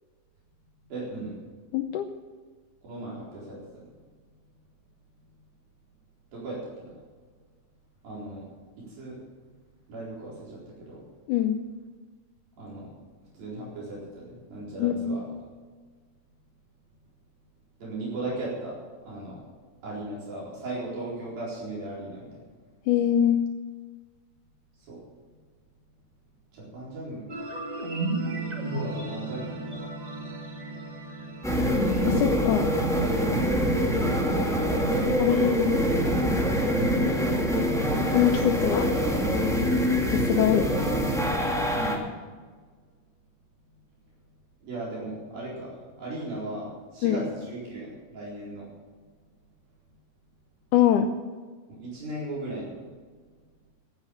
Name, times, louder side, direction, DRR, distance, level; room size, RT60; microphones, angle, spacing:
voice 1, 0.9-1.4 2.8-3.9 6.3-7.0 8.0-8.5 8.8-9.2 9.9-11.0 12.6-12.9 13.3-15.3 17.8-18.8 19.0-19.4 19.8-22.4 24.9-25.0 26.5-27.3 28.7-29.9 34.4-36.1 41.7-42.1 44.6-48.7 51.8-52.8, right 2 dB, 65° right, -6 dB, 6.0 m, -37 dB
voice 2, 1.7-2.1 11.3-11.6 14.8-15.1 22.9-23.4 32.1-32.7 35.2-35.8 38.1-38.9 40.1-40.8 47.0-47.2 50.7-51.1, left 10 dB, 80° left, 7 dB, 1.8 m, -23 dB
sound 1, 27.3-34.3, right 2 dB, 20° right, 1.2 m, -35 dB
sound 2, 31.4-42.0, equal, ahead, 0.8 m, -24 dB
15.5 x 10.0 x 7.0 m, 1.5 s
omnidirectional pair, 4.4 m